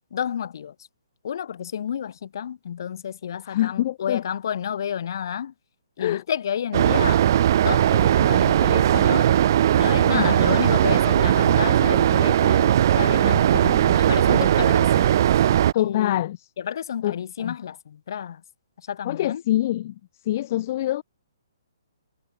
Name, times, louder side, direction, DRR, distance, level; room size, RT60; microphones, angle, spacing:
voice 1, 0.1-0.7 1.2-5.5 6.0-7.3 7.6-9.3 9.7-13.7 13.9-15.1 15.8-18.4 18.9-19.4, left 8 dB, 55° left, 2.3 m, -30 dB
voice 2, 3.5-4.2 6.0-6.2 10.1-10.3 13.3-14.0 15.7-16.4 17.0-17.5 19.1-19.9 20.3-21.0, left 14 dB, 40° left, 0.5 m, -25 dB
sound 1, 6.7-15.7, right 11 dB, 50° right, 0.5 m, -18 dB
hypercardioid pair, 145°, 2 cm